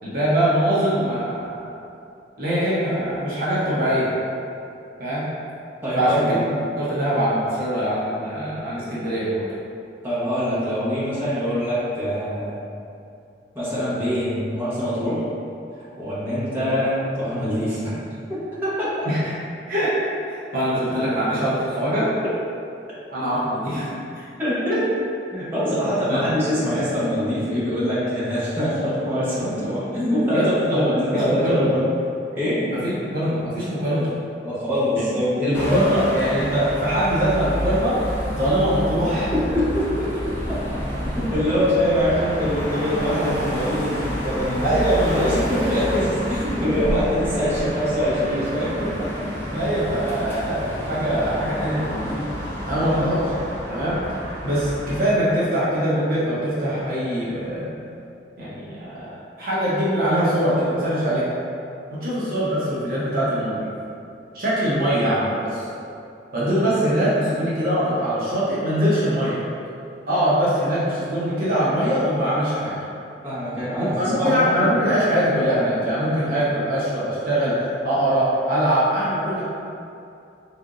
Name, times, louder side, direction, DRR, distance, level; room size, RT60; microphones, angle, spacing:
voice 1, 0.0-1.6 2.4-4.1 5.0-5.3 6.0-6.2 6.8-9.4 16.6-16.8 19.0-19.2 19.7-19.9 20.3-22.1 23.1-23.8 24.7-24.8 26.1-26.2 30.3-31.7 32.7-34.1 34.9-35.0 35.4-38.0 38.3-39.3 44.6-45.3 45.6-45.8 49.5-52.3 52.7-53.3 53.7-57.7 58.4-59.1 59.4-61.3 61.9-63.7 64.3-65.7 66.3-69.4 70.1-72.7 73.8-77.5 77.8-79.4, equal, 55° right, -9 dB, 0.8 m, -22 dB
voice 2, 5.8-6.4 10.0-12.6 13.5-15.2 15.7-18.0 18.3-19.0 24.4-24.8 25.3-31.8 32.3-32.7 34.4-35.8 39.3-44.8 45.1-49.1 52.7-52.8 73.2-74.8, equal, 15° right, -12 dB, 1.0 m, -24 dB
sound 1, 35.5-55.2, equal, 15° left, 0.6 m, -29 dB
3.6 x 3.4 x 2.5 m, 2.6 s
head